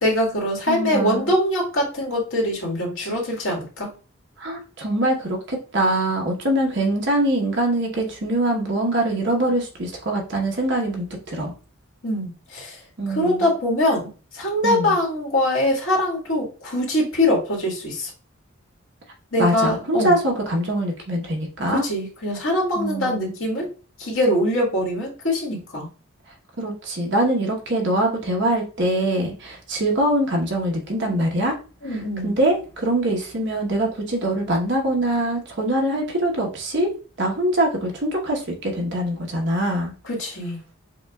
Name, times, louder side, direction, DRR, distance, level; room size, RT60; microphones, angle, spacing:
voice 1, 0.0-3.9 12.0-12.8 13.1-14.1 14.3-18.1 19.3-20.2 21.7-23.7 24.0-25.9 31.8-32.3 40.0-40.6, left 1 dB, 75° left, -3 dB, 1.7 m, -23 dB
voice 2, 0.7-1.3 4.4-11.5 13.0-13.5 14.6-15.0 19.4-21.8 22.7-23.3 26.6-31.5 31.9-36.9 37.2-39.9, right 1 dB, 55° right, 0 dB, 1.0 m, -23 dB
6.9 x 2.4 x 2.3 m, 0.37 s
head